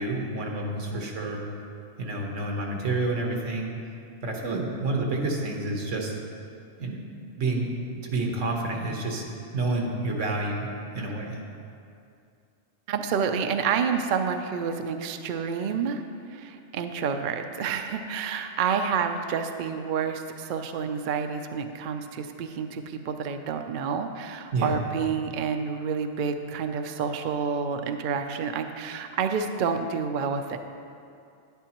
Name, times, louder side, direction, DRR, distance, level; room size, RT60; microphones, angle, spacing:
voice 1, 0.0-1.4 2.0-3.7 4.2-6.1 6.8-7.0 7.4-7.7 8.0-9.2 9.5-10.7 10.9-11.4 24.5-24.7, right 2 dB, 85° right, 0 dB, 1.5 m, -29 dB
voice 2, 12.9-16.0 16.3-30.6, right 6 dB, 55° right, 6 dB, 0.6 m, -29 dB
10.5 x 10.5 x 3.0 m, 2.5 s
omnidirectional pair, 1.2 m